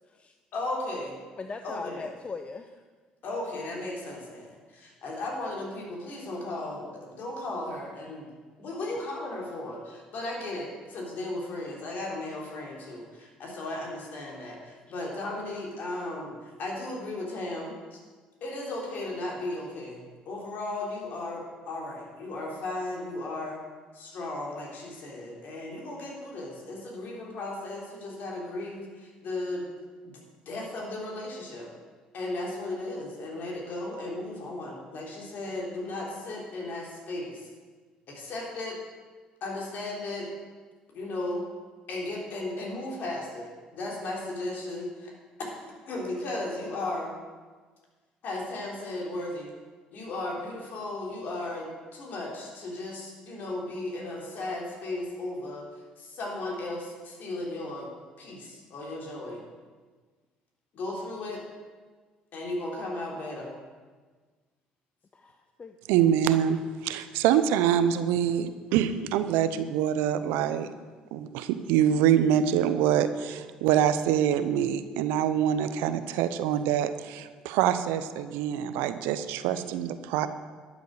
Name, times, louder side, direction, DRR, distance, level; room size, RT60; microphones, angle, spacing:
voice 1, 0.5-1.2 1.6-2.1 3.2-8.3 8.6-18.0 18.4-23.6 23.9-29.6 30.1-31.7 32.1-37.5 38.1-38.8 39.4-40.3 40.9-41.4 41.9-45.1 45.4-47.1 48.2-49.5 49.9-55.7 56.0-57.9 58.2-59.4 60.7-61.4 62.3-63.6, left 2 dB, 60° left, -2 dB, 3.5 m, -35 dB
voice 2, 1.4-2.8 8.1-8.2 65.1-65.8, left 4 dB, 35° left, 7 dB, 0.7 m, -40 dB
voice 3, 65.9-70.7 71.1-80.3, right 10 dB, 75° right, 11 dB, 0.7 m, -25 dB
12.0 x 7.3 x 6.5 m, 1.4 s
hypercardioid pair, 55°, 4 cm